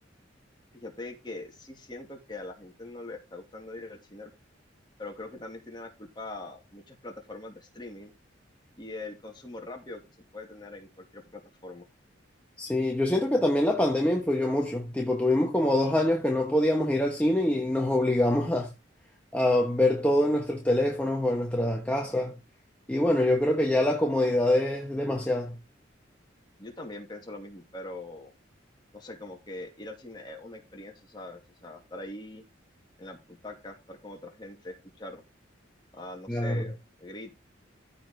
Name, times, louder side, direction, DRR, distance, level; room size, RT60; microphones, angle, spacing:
voice 1, 0.7-4.3 5.0-8.1 8.8-11.8 26.6-28.3 28.9-32.4 33.0-35.2 35.9-37.3, left 2 dB, 25° left, 2.6 m, -42 dB
voice 2, 12.6-18.7 19.3-22.3 22.9-25.6 36.3-36.6, left 1 dB, 5° left, 1.2 m, -25 dB
14.5 x 5.0 x 3.8 m
head